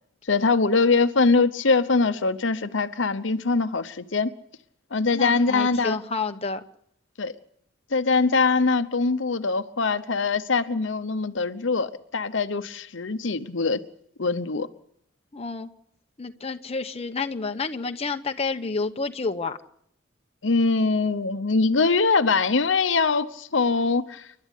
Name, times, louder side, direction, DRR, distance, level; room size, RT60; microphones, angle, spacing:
voice 1, 0.3-4.3 4.9-6.0 7.2-7.3 7.9-13.8 14.2-14.7 20.4-24.3, left 4 dB, 75° left, 1.0 m, -23 dB
voice 2, 5.1-6.6 15.3-15.7 16.2-19.6, left 4 dB, 35° left, 1.0 m, -29 dB
29.5 x 11.5 x 8.3 m
head